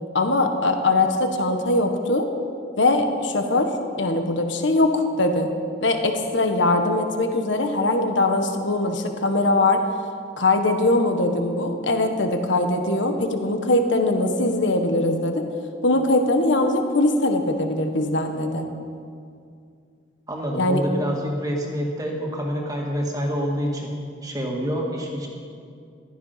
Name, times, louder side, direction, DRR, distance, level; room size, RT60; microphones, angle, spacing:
voice 1, 0.1-2.3 2.8-3.7 4.0-5.5 5.8-9.8 10.4-15.4 15.8-18.7 20.6-20.8, left 2 dB, 75° left, 6 dB, 1.4 m, -21 dB
voice 2, 20.3-23.9 24.2-25.3, equal, 20° right, -1 dB, 2.1 m, -27 dB
16.0 x 13.0 x 5.8 m, 2.3 s
head